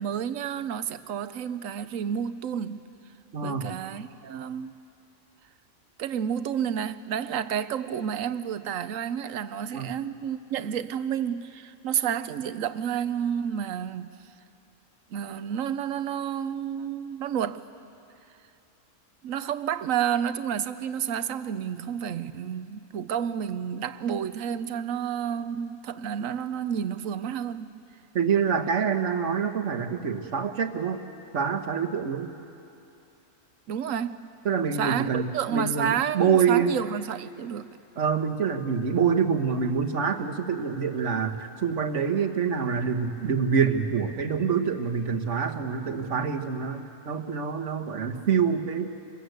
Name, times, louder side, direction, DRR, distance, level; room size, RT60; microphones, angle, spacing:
voice 1, 0.0-2.9 3.4-4.8 6.0-14.2 15.1-17.7 19.2-27.8 33.7-34.3 34.7-37.8, right 8 dB, 80° right, 1.1 m, -30 dB
voice 2, 3.3-3.7 9.7-9.9 28.1-31.0 31.3-32.3 34.4-36.8 38.0-49.1, right 6 dB, 65° right, 1.6 m, -26 dB
26.0 x 21.0 x 8.0 m
omnidirectional pair, 1.4 m